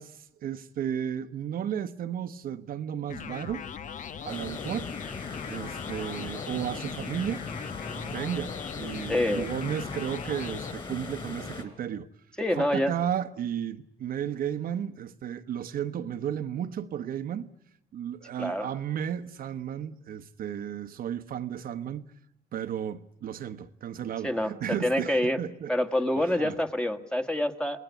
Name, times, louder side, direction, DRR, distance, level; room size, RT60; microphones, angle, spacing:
voice 1, 0.0-3.6 4.2-4.9 5.4-7.4 7.9-12.1 12.5-17.5 17.9-22.0 22.5-25.7 26.1-26.6, right 9 dB, 60° right, 1.2 m, -34 dB
sound 1, 3.1-10.7, left 8 dB, 50° left, 1.2 m, -40 dB
sound 2, 4.3-11.6, left 4 dB, 30° left, 4.3 m, -39 dB
voice 2, 9.1-9.4 12.4-12.9 18.4-18.8 24.2-25.4 25.7-27.8, left 1 dB, 5° left, 1.8 m, -27 dB
29.0 x 20.0 x 8.4 m
cardioid pair, 110°, 17 cm